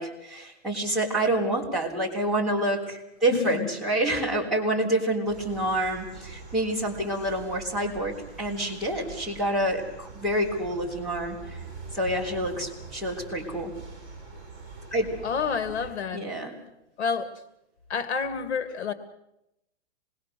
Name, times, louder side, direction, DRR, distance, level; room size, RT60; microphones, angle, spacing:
voice 1, 0.0-11.6 11.9-13.7 14.9-15.1 16.1-16.5, right 1 dB, ahead, -5 dB, 3.5 m, -27 dB
voice 2, 3.3-3.7 15.2-16.2 17.0-17.3 17.9-18.9, left 6 dB, 65° left, 10 dB, 2.1 m, -29 dB
sound 1, 5.2-15.9, right 4 dB, 20° right, 6.2 m, -44 dB
26.5 x 21.0 x 6.7 m, 0.86 s
hypercardioid pair, 180°, 36 cm